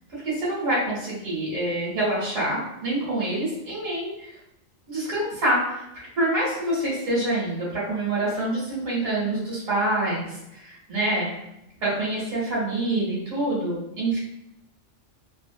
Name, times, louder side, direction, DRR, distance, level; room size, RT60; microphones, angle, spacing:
voice 1, 0.1-4.3 4.9-11.3 11.8-14.2, right 1 dB, 80° right, -6 dB, 1.5 m, -26 dB
3.1 x 2.5 x 2.2 m, 0.87 s
omnidirectional pair, 1.3 m